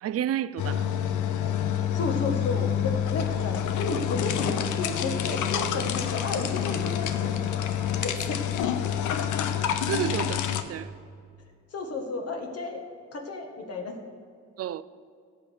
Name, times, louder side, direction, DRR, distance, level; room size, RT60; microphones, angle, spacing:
voice 1, 0.0-0.9 9.9-10.9 14.6-14.8, right 11 dB, 55° right, 0.5 m, -30 dB
sound 1, 0.6-10.6, left 9 dB, 80° left, 0.8 m, -27 dB
voice 2, 1.9-7.3 8.0-8.4 11.7-12.8 13.1-14.0, left 3 dB, 55° left, 1.8 m, -32 dB
17.0 x 7.1 x 4.6 m
cardioid pair, 90°, 30 cm